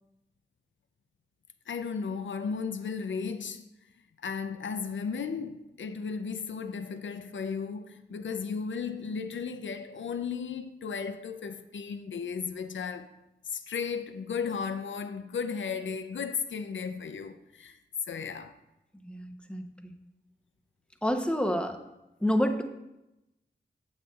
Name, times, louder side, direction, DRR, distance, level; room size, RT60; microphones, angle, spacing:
voice 1, 1.7-3.6 4.2-13.1 13.4-17.8 18.1-18.5, left 6 dB, 85° left, 0.5 m, -35 dB
voice 2, 19.1-19.9 21.0-21.8 22.2-22.6, equal, 5° left, 0.7 m, -28 dB
9.5 x 7.8 x 2.3 m
wide cardioid pair, 75°, 19 cm